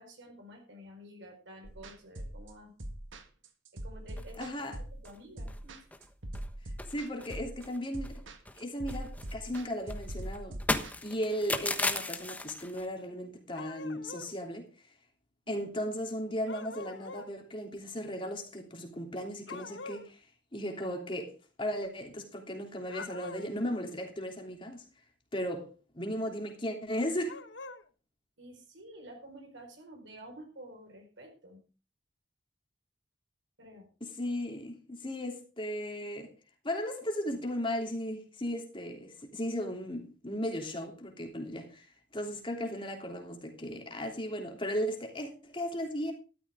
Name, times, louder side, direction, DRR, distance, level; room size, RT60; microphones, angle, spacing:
voice 1, 0.0-2.7 3.8-5.8 15.5-15.6 28.4-31.6 33.6-33.9, right 1 dB, 70° right, 4.8 m, -50 dB
sound 1, 1.6-10.9, right 1 dB, 90° right, 1.8 m, -42 dB
sound 2, 4.2-4.7 5.0-5.2 5.5-5.6 5.9-6.5 6.8-8.2 8.5-12.9, left 2 dB, 10° left, 1.2 m, -36 dB
voice 2, 4.4-4.8 6.9-8.3 8.6-10.6 11.0-14.7 15.5-20.2 20.5-21.3 21.6-24.8 25.3-27.4 34.0-36.3 36.6-46.1, equal, 25° left, 3.1 m, -36 dB
sound 3, 13.5-14.3 16.5-17.3 19.5-20.1 22.8-23.6 27.2-27.8, left 3 dB, 65° left, 1.1 m, -44 dB
13.0 x 13.0 x 3.7 m
head